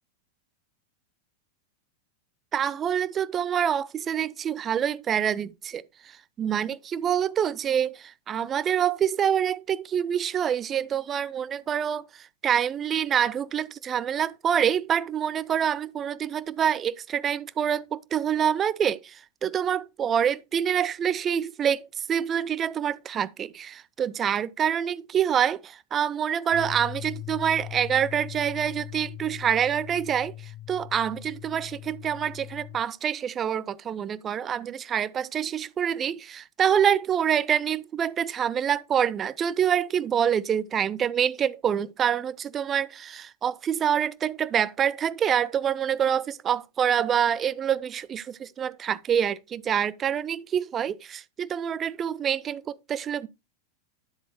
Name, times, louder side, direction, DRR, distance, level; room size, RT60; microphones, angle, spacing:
voice 1, 2.5-5.8 6.4-12.0 12.4-30.3 30.7-53.3, right 9 dB, 25° right, 0.5 m, -26 dB
sound 1, 26.5-32.8, left 13 dB, 55° left, 1.3 m, -40 dB
9.7 x 7.7 x 2.9 m
figure-of-eight pair, 90°, 0 cm